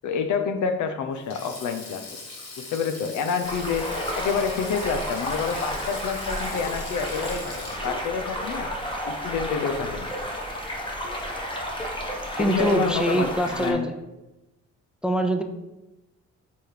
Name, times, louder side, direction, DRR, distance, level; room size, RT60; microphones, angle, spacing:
voice 1, 0.0-2.0 2.6-3.9 4.1-8.7 9.1-10.1 12.4-13.9, left 6 dB, 70° left, 7 dB, 0.8 m, -28 dB
Sink (filling or washing), 1.2-9.6 9.9-10.1 11.3-11.6, left 3 dB, 55° left, 1.6 m, -41 dB
sound 1, 3.4-13.7, equal, 15° left, 1.3 m, -32 dB
voice 2, 12.4-13.9 15.0-15.4, right 1 dB, 5° right, 6 dB, 0.5 m, -24 dB
7.0 x 3.5 x 4.6 m, 1.0 s
cardioid pair, 90°, 30 cm